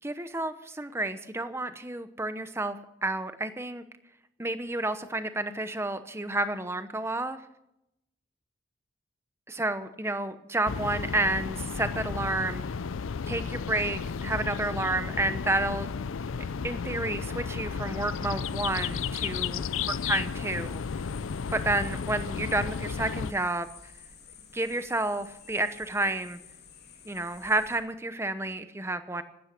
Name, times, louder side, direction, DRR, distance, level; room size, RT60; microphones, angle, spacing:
voice 1, 0.0-3.8 4.4-7.4 9.5-12.6 13.3-15.9 16.6-19.6 20.0-20.8 21.5-23.7 24.5-26.4 27.0-29.2, right 2 dB, 15° right, 10 dB, 0.9 m, -30 dB
sound 1, 10.7-23.3, left 6 dB, 90° left, 0.5 m, -33 dB
sound 2, 18.4-27.8, left 6 dB, 55° left, 3.1 m, -52 dB
16.5 x 12.5 x 6.0 m, 0.85 s
head